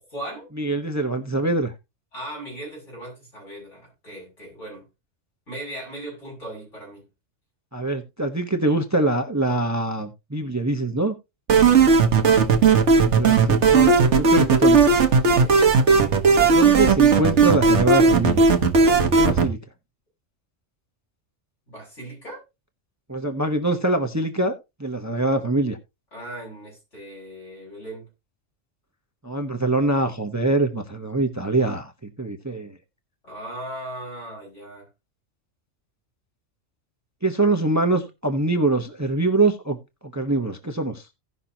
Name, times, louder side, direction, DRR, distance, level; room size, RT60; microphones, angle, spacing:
voice 1, 0.0-0.5 2.1-4.9 5.5-7.0 11.6-11.8 15.4-15.5 21.7-22.4 26.1-28.1 33.2-34.9, right 1 dB, 75° left, 7.5 m, -38 dB
voice 2, 0.6-1.7 7.7-11.1 12.9-14.8 16.5-18.5 19.1-19.6 23.1-24.5 24.8-25.8 29.2-32.8 37.2-39.8 40.0-41.0, right 2 dB, 15° right, 0.9 m, -24 dB
sound 1, 11.5-19.5, right 5 dB, 65° right, 1.4 m, -16 dB
17.0 x 5.8 x 2.8 m
omnidirectional pair, 1.3 m